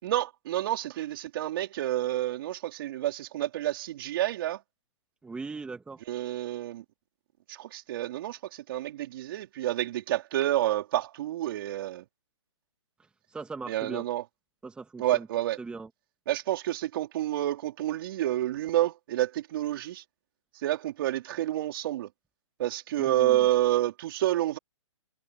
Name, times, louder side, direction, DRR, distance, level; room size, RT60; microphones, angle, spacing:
voice 1, 0.0-4.6 6.1-6.8 7.5-12.0 13.7-14.2 15.0-15.6 16.3-20.0 20.6-22.1 22.6-24.6, right 14 dB, 45° right, 4.0 m, -29 dB
voice 2, 5.2-6.0 13.3-14.0 14.6-15.3 15.6-15.9 23.0-23.4, right 4 dB, 5° right, 1.7 m, -39 dB
hypercardioid pair, 140°, 17 cm